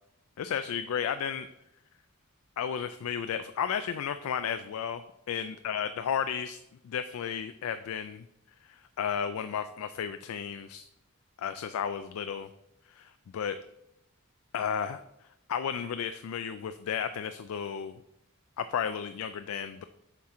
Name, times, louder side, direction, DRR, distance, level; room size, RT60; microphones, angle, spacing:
voice 1, 0.4-1.5 2.6-8.2 8.6-10.9 11.4-12.5 12.9-13.6 14.5-15.0 15.5-18.0 18.6-19.8, left 7 dB, 75° left, 10 dB, 0.3 m, -33 dB
7.2 x 4.4 x 3.7 m, 0.84 s
head